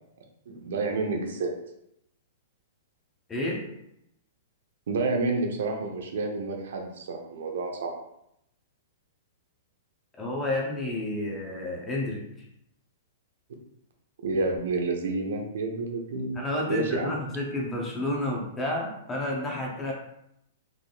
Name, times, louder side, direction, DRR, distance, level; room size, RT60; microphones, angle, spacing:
voice 1, 0.5-1.5 4.9-7.9 14.2-16.4 16.7-17.1, right 3 dB, 75° right, 2 dB, 0.8 m, -29 dB
voice 2, 3.3-3.6 10.2-12.3 16.3-19.9, left 1 dB, 10° left, -2 dB, 0.8 m, -30 dB
3.9 x 3.5 x 2.4 m, 0.78 s
hypercardioid pair, 160°, 0 cm